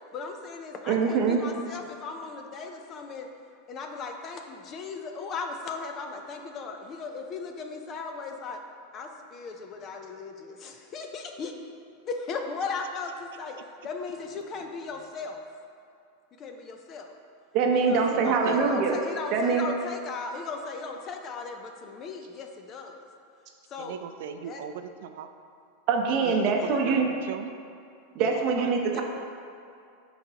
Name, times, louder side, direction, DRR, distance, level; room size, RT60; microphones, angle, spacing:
voice 1, 0.1-3.3 3.7-8.6 8.9-11.5 12.0-13.6 13.8-15.4 16.4-17.1 17.9-23.0 23.7-24.0 24.4-24.6 26.6-27.0 28.9-29.0, left 4 dB, 25° left, 4 dB, 0.5 m, -37 dB
voice 2, 0.9-1.4 17.5-19.0 19.3-19.7 25.9-27.1 28.1-29.0, right 5 dB, 35° right, 1 dB, 0.7 m, -24 dB
voice 3, 18.1-18.6 23.8-25.3 26.1-27.5 28.6-28.7, right 8 dB, 70° right, 8 dB, 0.4 m, -38 dB
11.5 x 4.0 x 2.9 m, 2.4 s
supercardioid pair, 165°, 0 cm